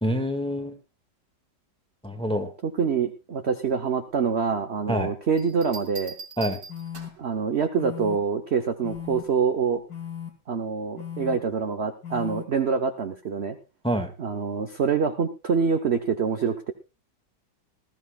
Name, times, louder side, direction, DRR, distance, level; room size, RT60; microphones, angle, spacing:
voice 1, 0.0-0.7 2.0-2.5 4.9-5.1 6.4-6.6 13.8-14.1, equal, 5° left, 5 dB, 1.7 m, -26 dB
voice 2, 2.6-6.1 7.2-9.8 10.5-13.6 14.2-16.7, right 6 dB, 45° right, 6 dB, 1.0 m, -25 dB
Bell, 5.4-7.3 8.9-9.3, right 4 dB, 70° right, 3.6 m, -41 dB
sound 1, 6.7-7.1 7.8-8.2 8.8-9.2 9.9-10.3 11.0-11.4 12.0-12.4, left 9 dB, 80° left, 2.2 m, -36 dB
19.5 x 14.0 x 2.4 m, 0.28 s
omnidirectional pair, 1.9 m